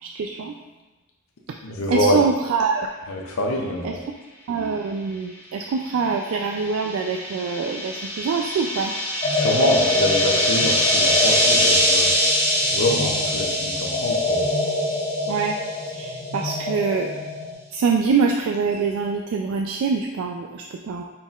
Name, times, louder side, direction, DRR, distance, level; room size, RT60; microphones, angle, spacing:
voice 1, 0.0-0.5 1.9-2.9 3.8-3.9 4.5-8.9 15.3-15.5 15.9-17.2 17.7-21.0, right 5 dB, 90° right, 2 dB, 0.3 m, -24 dB
voice 2, 1.6-2.2 3.1-4.0 9.3-12.1 12.7-14.5, left 1 dB, 85° left, -1 dB, 0.6 m, -25 dB
sound 1, 6.0-15.8, equal, 15° right, 1.4 m, -23 dB
sound 2, 9.2-17.5, left 2 dB, 30° left, 1.4 m, -26 dB
5.3 x 4.2 x 2.4 m, 1.2 s
head